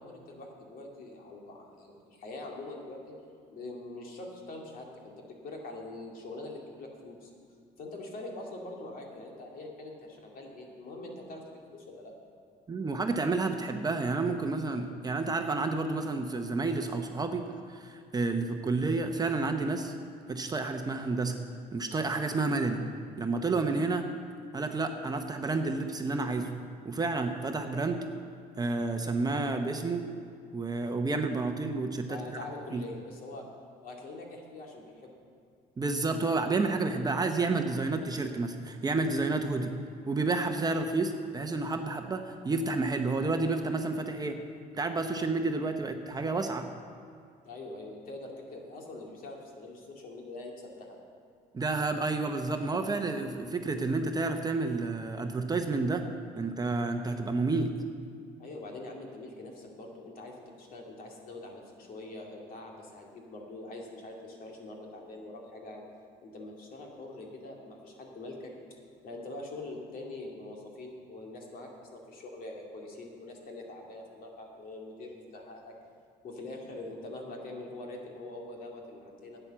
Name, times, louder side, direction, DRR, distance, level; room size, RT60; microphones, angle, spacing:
voice 1, 0.0-3.0 3.5-7.3 7.8-12.1 32.0-33.4 33.8-35.2 47.4-51.0 58.4-65.8 66.2-68.5 69.0-75.7 76.2-79.4, left 2 dB, 60° left, 0 dB, 2.4 m, -44 dB
voice 2, 12.7-19.9 20.3-21.4 21.7-22.8 23.2-24.0 24.5-26.5 26.8-28.0 28.6-30.1 30.5-32.4 32.7-32.8 35.8-39.7 40.1-44.4 44.7-46.7 51.5-56.0 56.4-57.7, right 3 dB, 25° right, 5 dB, 0.8 m, -30 dB
10.5 x 9.0 x 6.9 m, 2.3 s
cardioid pair, 110°, 17 cm